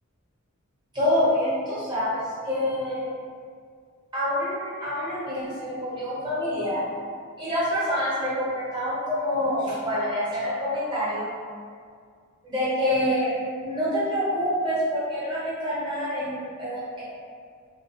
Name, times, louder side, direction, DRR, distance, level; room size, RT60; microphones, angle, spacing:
voice 1, 0.9-3.1 4.1-6.8 7.4-11.3 12.4-13.3 13.6-16.8, equal, 20° right, -11 dB, 1.0 m, -26 dB
2.4 x 2.2 x 2.7 m, 2.1 s
head